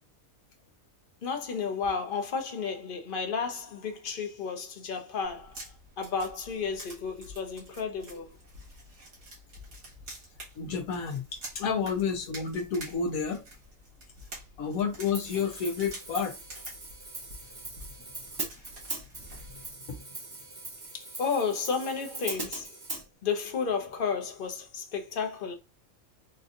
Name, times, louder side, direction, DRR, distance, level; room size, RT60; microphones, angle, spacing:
voice 1, 1.2-8.3 20.9-22.8 23.2-25.5, left 5 dB, 45° left, 0.8 m, -32 dB
sound 1, 5.2-19.7, right 1 dB, 75° right, 2.0 m, -48 dB
voice 2, 10.6-13.4 14.6-16.3, left 6 dB, 80° left, 1.1 m, -30 dB
Hi-hat, 15.1-23.0, right 2 dB, 30° right, 0.4 m, -40 dB
4.3 x 2.6 x 2.4 m
omnidirectional pair, 1.5 m